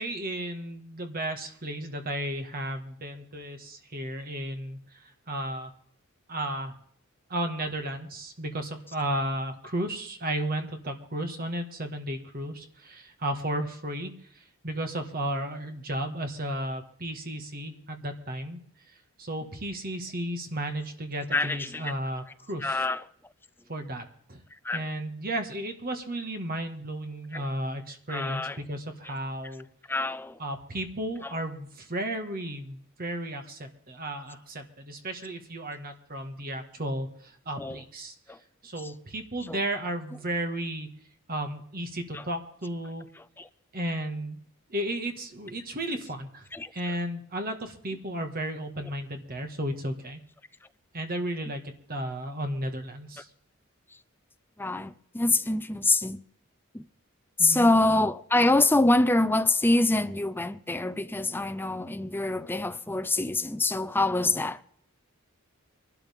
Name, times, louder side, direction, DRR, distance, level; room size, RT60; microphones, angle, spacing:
voice 1, 0.0-5.7 6.3-6.7 7.3-18.6 19.2-22.8 23.7-24.4 24.7-29.7 30.4-38.1 38.6-40.9 41.3-43.1 43.7-44.4 44.7-46.5 46.7-50.2 50.9-53.3 57.4-57.7, right 1 dB, 45° right, 1.8 m, -34 dB
voice 2, 21.3-21.9 22.6-23.1 24.7-24.9 27.3-27.4 28.1-28.6 29.0-29.1 29.9-30.4 31.2-31.4 37.6-37.8 38.3-38.4 38.8-38.9 39.4-39.6 40.1-40.2 42.1-42.3 43.2-43.3 46.6-47.0 51.5-51.6 54.6-56.2 56.7-56.8 57.4-64.6, left 2 dB, 10° left, 0.5 m, -25 dB
24.5 x 12.0 x 3.6 m
head